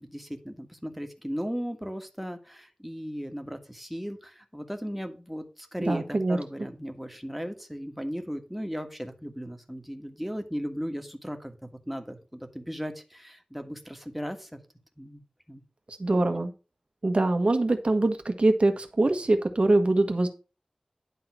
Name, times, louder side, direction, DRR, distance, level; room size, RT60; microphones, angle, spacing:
voice 1, 0.0-14.6 15.0-15.6, equal, 5° right, 6 dB, 1.6 m, -36 dB
voice 2, 5.8-6.4 15.9-16.5 17.0-20.3, right 2 dB, 60° right, 7 dB, 1.4 m, -23 dB
10.5 x 3.8 x 6.1 m, 0.32 s
wide cardioid pair, 60°, 2 cm